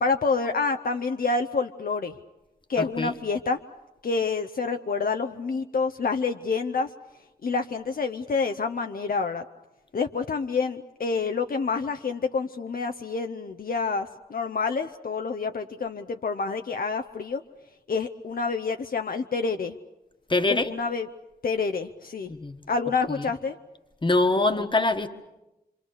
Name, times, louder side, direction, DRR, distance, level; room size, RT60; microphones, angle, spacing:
voice 1, 0.0-2.2 2.7-3.6 4.0-6.9 7.4-9.4 9.9-17.4 17.9-19.8 20.5-21.1 21.4-22.3 22.7-23.6 24.4-24.6, left 4 dB, 65° left, 6 dB, 0.8 m, -28 dB
voice 2, 2.8-3.2 20.3-20.7 22.2-22.6 23.1-23.3 24.0-25.1, left 2 dB, 30° left, 7 dB, 1.4 m, -24 dB
26.0 x 26.0 x 6.6 m, 0.99 s
wide cardioid pair, 100°, 16 cm